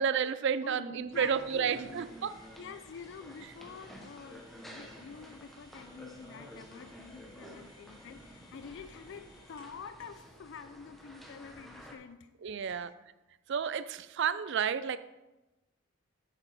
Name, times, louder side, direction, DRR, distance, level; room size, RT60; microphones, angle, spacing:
voice 1, 0.0-2.3 12.4-12.9 13.5-15.0, right 7 dB, 55° right, 14 dB, 0.4 m, -31 dB
voice 2, 0.6-2.0 2.6-12.3 12.6-12.9, left 6 dB, 60° left, 11 dB, 0.4 m, -48 dB
sound 1, 1.1-12.0, equal, ahead, 0.9 m, -51 dB
sound 2, 1.7-9.9, left 1 dB, 20° left, 3.2 m, -61 dB
8.9 x 6.9 x 4.1 m, 1.0 s
head